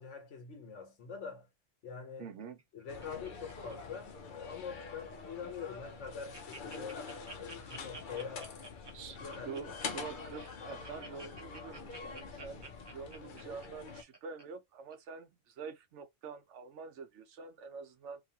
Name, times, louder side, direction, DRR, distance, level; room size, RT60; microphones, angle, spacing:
voice 1, 0.0-1.5 1.8-2.3 2.7-7.0 7.4-8.5 9.2-9.7, left 6 dB, 85° left, 1.3 m, -44 dB
voice 2, 2.2-2.6 8.9-9.2 9.5-18.2, right 5 dB, 80° right, 1.0 m, -46 dB
Laughter, 2.4-4.2 4.4-4.8 5.3-5.4 5.6-5.7 6.0-14.4 14.9-15.0, right 2 dB, 25° right, 0.6 m, -51 dB
sound 1, 2.9-14.0, left 5 dB, 55° left, 0.6 m, -45 dB
2.9 x 2.4 x 2.8 m
omnidirectional pair, 1.2 m